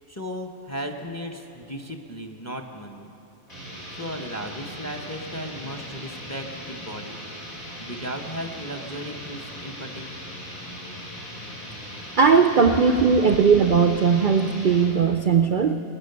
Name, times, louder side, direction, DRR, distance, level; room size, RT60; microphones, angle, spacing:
voice 1, 0.1-3.1 3.9-7.2 7.8-10.1, equal, 15° left, 4 dB, 0.8 m, -35 dB
sound 1, 3.5-14.9, equal, 75° left, 5.4 m, -39 dB
voice 2, 12.2-15.8, right 5 dB, 55° right, 7 dB, 0.5 m, -18 dB
20.5 x 9.7 x 6.8 m, 3.0 s
omnidirectional pair, 1.5 m